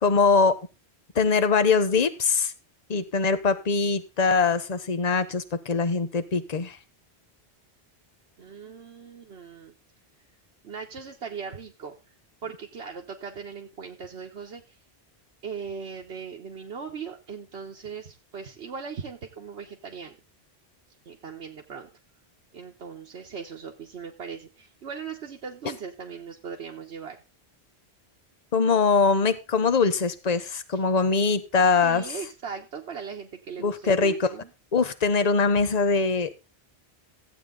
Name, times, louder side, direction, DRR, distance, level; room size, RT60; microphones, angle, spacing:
voice 1, 0.0-0.6 1.1-2.5 2.9-6.8 28.5-32.1 33.6-34.3 34.7-36.4, left 4 dB, 40° left, 11 dB, 1.0 m, -22 dB
voice 2, 8.4-9.7 10.6-12.1 12.4-14.8 15.4-20.2 21.0-21.9 22.5-27.2 30.7-30.8 31.7-34.5, right 6 dB, 85° right, 1 dB, 1.3 m, -39 dB
14.5 x 8.2 x 3.7 m, 0.29 s
omnidirectional pair, 1.1 m